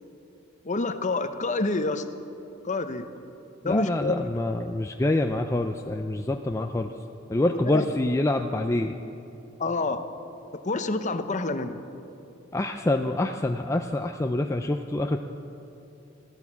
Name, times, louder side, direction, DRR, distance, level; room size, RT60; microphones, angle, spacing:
voice 1, 0.6-2.0 2.6-3.1 3.6-4.3 7.5-7.9 9.6-10.0 10.6-11.8, left 3 dB, 35° left, 9 dB, 0.8 m, -28 dB
voice 2, 3.6-6.9 7.3-8.9 12.5-15.2, left 1 dB, 15° left, 5 dB, 0.4 m, -26 dB
15.0 x 12.5 x 7.2 m, 2.8 s
head